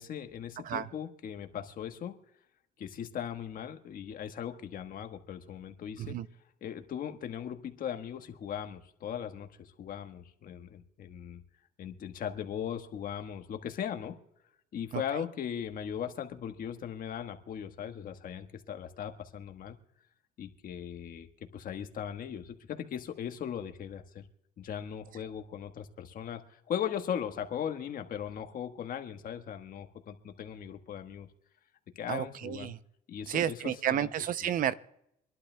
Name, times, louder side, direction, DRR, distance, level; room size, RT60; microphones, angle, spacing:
voice 1, 0.0-2.2 2.8-6.2 6.6-11.4 11.8-14.2 14.7-19.8 20.4-21.3 21.5-24.2 24.6-31.3 31.9-32.7 33.1-34.1 34.4-34.6, left 9 dB, 55° left, 6 dB, 1.4 m, -38 dB
voice 2, 32.1-32.8 33.3-34.7, right 10 dB, 55° right, 15 dB, 0.6 m, -31 dB
26.0 x 11.5 x 2.2 m, 0.76 s
cardioid pair, 110°, 17 cm